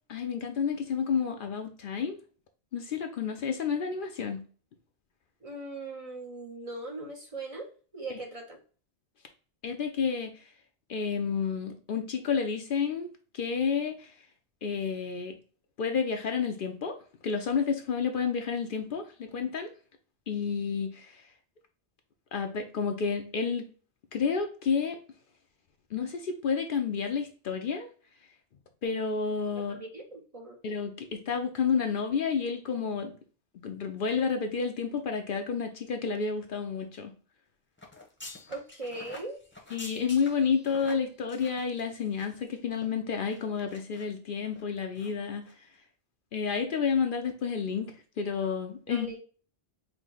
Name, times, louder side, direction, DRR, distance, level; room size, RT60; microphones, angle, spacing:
voice 1, 0.1-2.2 2.7-4.4 9.6-10.3 10.9-13.1 13.3-14.1 14.6-15.4 15.8-17.0 17.2-19.7 20.3-21.2 22.3-23.7 24.1-25.0 25.9-27.9 28.8-29.8 30.6-33.1 33.6-37.1 39.7-45.5 46.3-49.2, left 6 dB, 60° left, 5 dB, 0.7 m, -30 dB
voice 2, 5.4-7.7 7.9-8.6 29.7-30.6 38.5-39.4 48.9-49.2, right 2 dB, 40° right, 1 dB, 0.7 m, -39 dB
sound 1, 37.8-42.5 42.7-42.9 43.3-44.0 44.4-44.6 44.9-45.1 45.4-45.5, left 2 dB, 10° left, 0.8 m, -47 dB
4.7 x 2.2 x 3.7 m, 0.40 s
omnidirectional pair, 1.1 m